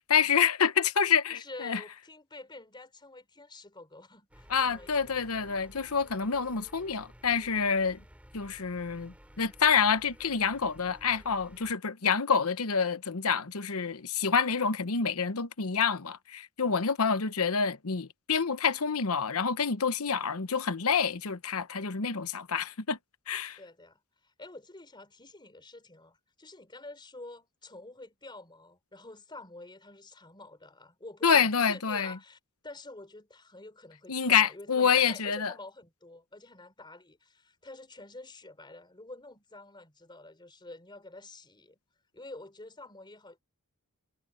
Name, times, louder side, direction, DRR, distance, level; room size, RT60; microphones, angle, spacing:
voice 1, 0.1-1.8 4.5-8.0 8.3-23.0 23.3-23.6 31.2-32.2 34.1-35.5, left 6 dB, 75° left, 1.0 m, -27 dB
voice 2, 1.3-5.1 23.6-41.8 42.1-43.4, left 2 dB, 20° left, 4.0 m, -48 dB
sound 1, 4.3-11.7, equal, 5° right, 4.0 m, -54 dB
head